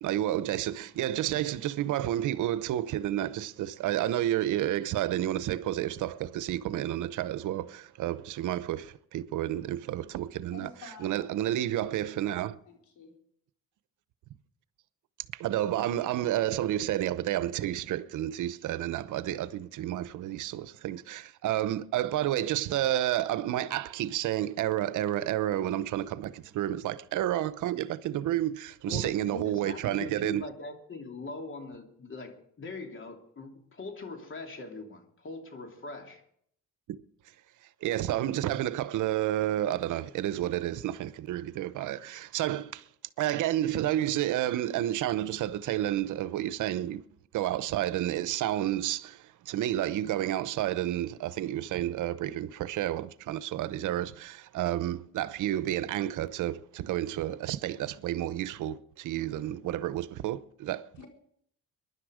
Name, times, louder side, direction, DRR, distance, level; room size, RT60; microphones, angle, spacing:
voice 1, 0.0-10.7 11.0-12.6 15.3-30.5 36.9-37.0 37.8-42.8 43.2-47.0 47.3-61.0, right 13 dB, 80° right, 0.8 m, -30 dB
voice 2, 10.4-12.4 12.7-13.2 59.6-59.7 61.0-61.1, left 5 dB, 75° left, 4.4 m, -51 dB
voice 3, 28.9-36.2, left 3 dB, 40° left, 2.9 m, -42 dB
23.0 x 11.0 x 5.0 m
cardioid pair, 90°, 30 cm